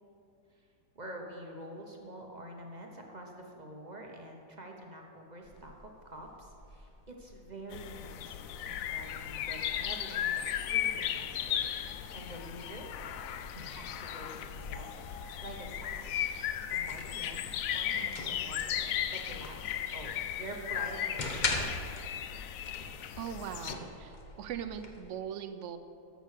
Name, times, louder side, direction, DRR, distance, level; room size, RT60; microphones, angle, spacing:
voice 1, 0.9-11.6 12.1-12.9 13.5-21.7, right 1 dB, 30° right, 1 dB, 0.9 m, -47 dB
sound 1, 5.4-25.2, left 3 dB, 35° left, 0.8 m, -44 dB
sound 2, 7.7-23.7, left 10 dB, 70° left, 0.8 m, -36 dB
voice 2, 23.2-25.8, right 8 dB, 65° right, 9 dB, 0.8 m, -40 dB
13.5 x 6.6 x 6.6 m, 2.6 s
omnidirectional pair, 1.8 m